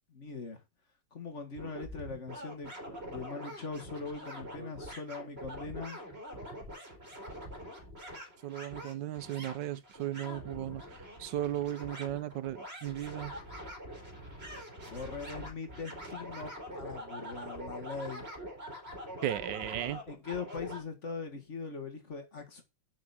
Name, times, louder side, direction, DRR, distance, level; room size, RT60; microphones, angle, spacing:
voice 1, 0.1-0.6 1.1-6.0 14.9-18.3 20.0-22.6, left 4 dB, 40° left, 2.0 m, -41 dB
sound 1, 1.5-20.8, equal, 35° right, 4.1 m, -44 dB
voice 2, 8.4-10.8 11.2-13.3 19.2-20.0, right 12 dB, 85° right, 1.4 m, -35 dB
7.5 x 6.3 x 7.1 m
omnidirectional pair, 1.9 m